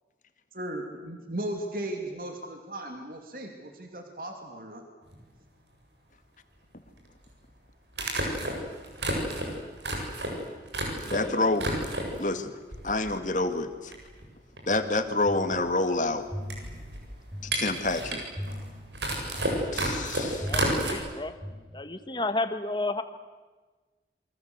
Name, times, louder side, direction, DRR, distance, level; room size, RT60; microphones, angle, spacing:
voice 1, 0.5-4.8, right 1 dB, 55° right, 3 dB, 2.9 m, -36 dB
sound 1, 5.1-5.2 7.0-7.1 7.9-11.2 11.5-12.2 12.7-13.4 13.6-13.7 13.9-20.9, right 1 dB, 85° right, 7.8 m, -31 dB
voice 2, 11.1-11.7 12.2-12.5 12.8-13.9 14.7-16.3 17.4-18.2 19.7-20.5, left 2 dB, 45° left, 8 dB, 2.0 m, -28 dB
sound 2, 14.7-21.5, equal, 20° right, 7.3 m, -41 dB
voice 3, 20.5-21.3 21.7-23.0, left 2 dB, 25° left, 9 dB, 1.6 m, -31 dB
28.5 x 24.0 x 8.1 m, 1.3 s
head